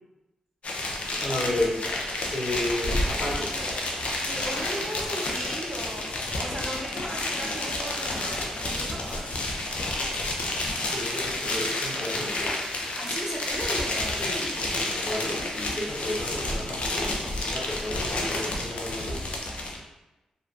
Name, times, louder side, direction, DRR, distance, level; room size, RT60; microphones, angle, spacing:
sound 1, 0.6-19.8, left 2 dB, 60° left, 0.4 m, -30 dB
voice 1, 0.7-1.8 2.3-3.7 10.9-12.5 14.2-19.2, left 1 dB, 40° left, -6 dB, 1.0 m, -33 dB
voice 2, 4.3-9.3 12.9-14.2, equal, 15° right, -3 dB, 0.5 m, -36 dB
2.4 x 2.1 x 2.4 m, 1.0 s
supercardioid pair, 50°, 2 cm